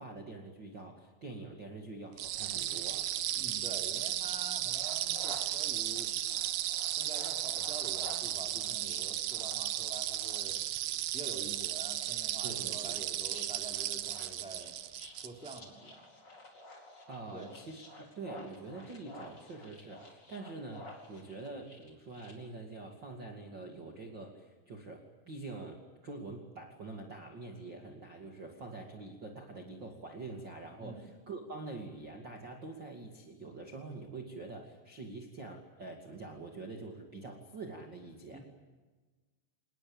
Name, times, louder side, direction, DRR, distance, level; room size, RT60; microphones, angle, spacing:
voice 1, 0.0-3.1 12.4-13.0 17.1-38.4, right 3 dB, 35° right, 0 dB, 2.5 m, -45 dB
sound 1, 2.2-15.6, right 13 dB, 70° right, 2.7 m, -35 dB
voice 2, 3.3-6.1 7.0-10.6 11.1-14.7 15.1-16.0 17.3-17.5 30.8-31.0 38.3-38.4, right 2 dB, ahead, 2 dB, 2.9 m, -47 dB
sound 2, 4.6-22.3, left 2 dB, 25° left, 4.6 m, -52 dB
27.5 x 20.5 x 8.9 m, 1.3 s
omnidirectional pair, 4.8 m